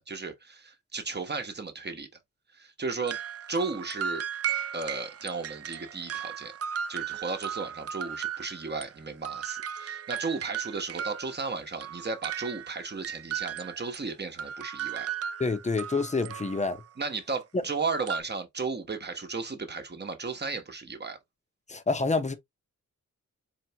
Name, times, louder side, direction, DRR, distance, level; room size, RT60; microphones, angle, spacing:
voice 1, 0.1-2.1 2.5-3.2 3.5-4.2 4.7-6.5 6.9-15.1 17.0-21.2, right 4 dB, 35° right, 1.1 m, -34 dB
sound 1, 3.0-8.9 9.2-14.0 14.4-16.9 18.1-18.2, right 8 dB, 50° right, 0.4 m, -36 dB
voice 2, 15.4-16.8 17.5-17.6 21.7-22.3, left 3 dB, 20° left, 0.7 m, -27 dB
4.6 x 3.3 x 2.8 m
wide cardioid pair, 125°, 32 cm